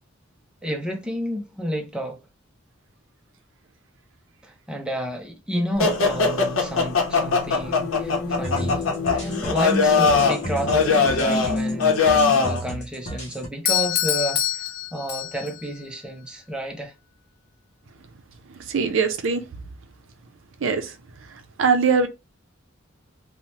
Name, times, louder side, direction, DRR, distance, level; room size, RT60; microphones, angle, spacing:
voice 1, 0.6-2.2 4.4-14.6 14.9-16.9, equal, 5° right, 0.5 m, -31 dB
sound 1, 5.8-12.6, left 4 dB, 90° left, 0.7 m, -21 dB
sound 2, 8.4-13.5, right 1 dB, 40° left, 0.8 m, -33 dB
Doorbell, 13.7-15.7, left 10 dB, 55° left, 0.5 m, -25 dB
voice 2, 18.7-19.5 20.6-20.9 21.6-22.1, right 5 dB, 70° right, 0.5 m, -21 dB
2.7 x 2.1 x 3.0 m
head